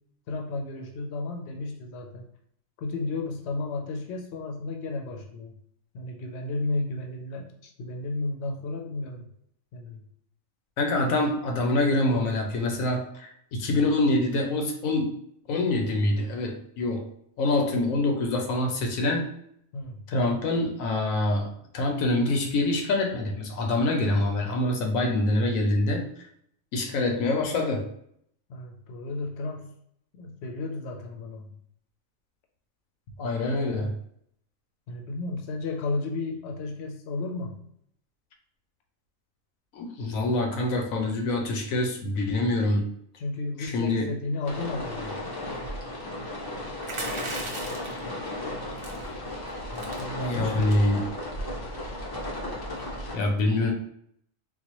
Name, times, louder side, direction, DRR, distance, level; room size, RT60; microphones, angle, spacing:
voice 1, 0.3-2.2 2.8-5.5 5.9-7.5 7.8-9.3 9.7-10.0 19.7-20.0 28.5-29.7 30.1-31.5 33.7-33.9 34.9-37.6 43.2-45.3 49.7-50.8, left 2 dB, 60° left, 2 dB, 0.8 m, -33 dB
voice 2, 10.8-15.2 15.5-17.1 17.4-19.3 20.1-21.5 21.7-26.1 26.7-27.8 33.2-33.9 39.7-42.9 43.6-44.1 50.2-51.1 53.1-53.7, left 2 dB, 85° left, 3 dB, 1.1 m, -25 dB
sound 1, 44.4-53.2, left 1 dB, 35° left, 0.4 m, -35 dB
sound 2, 46.8-48.0 48.8-49.1 49.5-49.6 49.8-50.0 50.6-50.9, right 2 dB, 45° right, 0.4 m, -36 dB
4.0 x 2.2 x 3.0 m, 0.69 s
omnidirectional pair, 1.4 m